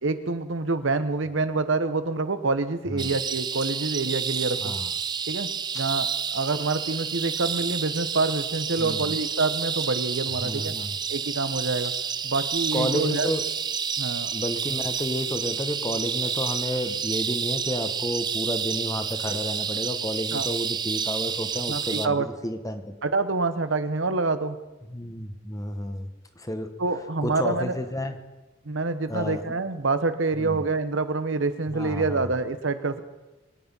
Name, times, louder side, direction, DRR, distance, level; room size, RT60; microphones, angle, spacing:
voice 1, 0.0-4.8 5.3-5.5 5.7-10.7 11.1-11.9 12.2-13.3 14.0-14.3 20.3-20.5 21.7-22.3 23.0-24.6 26.8-27.8 28.6-33.0, right 3 dB, 75° right, 11 dB, 1.0 m, -27 dB
sound 1, 3.0-22.1, right 7 dB, 20° right, 0.4 m, -30 dB
voice 2, 8.8-9.1 10.4-10.9 12.7-13.4 14.3-22.9 24.9-26.1 26.4-26.7 27.2-28.2 29.1-29.4 30.4-30.6 31.7-32.3, left 1 dB, 20° left, 8 dB, 1.2 m, -31 dB
23.0 x 9.6 x 5.5 m, 1.1 s
head